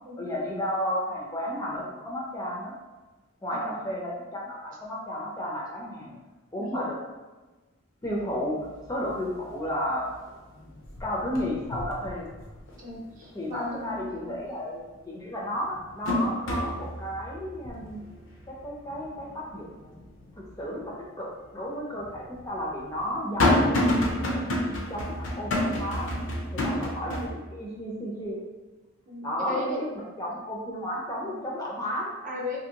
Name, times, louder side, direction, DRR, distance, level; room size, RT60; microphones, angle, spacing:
voice 1, 0.2-2.7 3.4-6.2 6.5-7.0 8.0-10.1 11.0-12.3 13.3-18.0 18.5-20.0 20.6-21.3 21.5-24.0 24.9-26.1 26.5-28.4 29.2-29.6 30.2-32.2, equal, 20° left, -4 dB, 0.5 m, -33 dB
voice 2, 3.5-3.9 6.6-6.9 12.8-14.4 29.1-29.8 31.1-31.4 32.2-32.6, left 2 dB, 40° right, -4 dB, 0.7 m, -37 dB
sound 1, 8.1-8.2 8.6-9.1 9.5-10.3 10.6-12.8 13.2-13.3 14.8-14.9 15.4-20.5 20.9-21.0 21.9-27.3, left 1 dB, 65° left, 0.5 m, -29 dB
2.7 x 2.6 x 2.8 m, 1.2 s
head